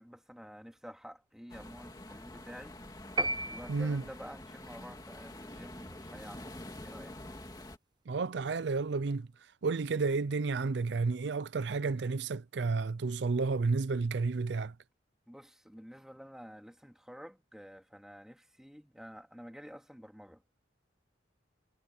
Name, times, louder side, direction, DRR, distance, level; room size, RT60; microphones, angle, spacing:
voice 1, 0.0-3.2 3.5-7.3 15.3-20.5, equal, 5° right, 2.4 m, -50 dB
sound 1, 1.5-7.8, left 1 dB, 20° left, 2.1 m, -47 dB
sound 2, 3.2-4.4, right 1 dB, 20° right, 0.7 m, -34 dB
voice 2, 3.7-4.0 8.1-9.3 9.6-14.7, right 4 dB, 60° right, 0.5 m, -31 dB
head